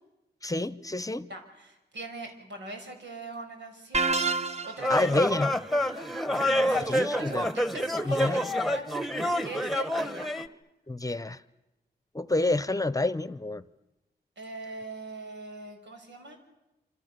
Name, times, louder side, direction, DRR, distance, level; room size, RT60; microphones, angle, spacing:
voice 1, 0.4-1.3 4.9-5.6 5.8-6.1 6.9-7.5 8.0-8.5 10.9-11.4 12.1-13.6, left 2 dB, 20° left, 15 dB, 0.9 m, -29 dB
voice 2, 1.3-5.3 6.4-8.9 9.4-10.3 14.4-16.4, right 2 dB, 90° right, 3 dB, 5.8 m, -41 dB
sound 1, 3.9-5.0, right 3 dB, 35° right, 1.0 m, -27 dB
sound 2, 4.8-10.5, left 1 dB, ahead, 1.3 m, -27 dB
27.0 x 27.0 x 6.9 m, 0.97 s
wide cardioid pair, 105°, 18 cm